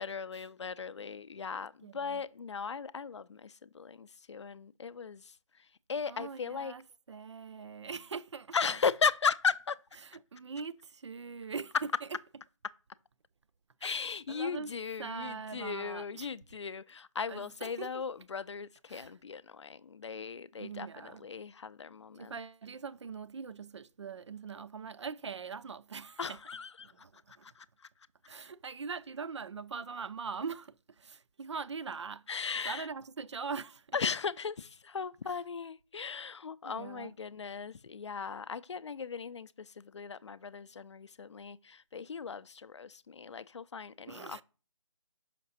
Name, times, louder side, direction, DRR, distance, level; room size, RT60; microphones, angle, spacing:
voice 1, 0.0-5.3 5.9-6.7 8.5-9.8 13.8-22.3 26.2-26.9 27.4-27.7 32.3-32.9 33.9-44.4, left 5 dB, 55° left, 0.4 m, -37 dB
voice 2, 1.8-2.2 6.1-8.8 10.0-11.8 13.8-14.7 15.0-16.3 17.3-18.0 18.9-19.1 20.6-21.3 22.1-26.4 26.8-27.5 28.3-32.3 32.6-34.0 36.6-37.2 44.1-44.4, right 5 dB, 55° right, 0.4 m, -42 dB
5.8 x 5.6 x 4.0 m
figure-of-eight pair, 150°, 17 cm